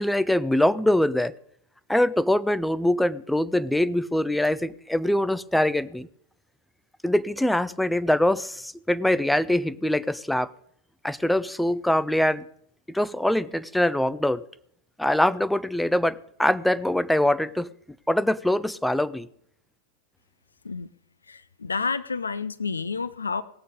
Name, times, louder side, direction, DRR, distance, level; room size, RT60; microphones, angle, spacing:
voice 1, 0.0-1.3 1.9-6.1 7.0-10.5 11.0-12.4 12.9-14.4 15.0-17.7 18.1-19.3, left 1 dB, 5° left, 16 dB, 0.4 m, -23 dB
voice 2, 21.3-23.4, left 5 dB, 75° left, 14 dB, 0.5 m, -30 dB
18.5 x 7.9 x 5.1 m, 0.70 s
figure-of-eight pair, 90°, 0 cm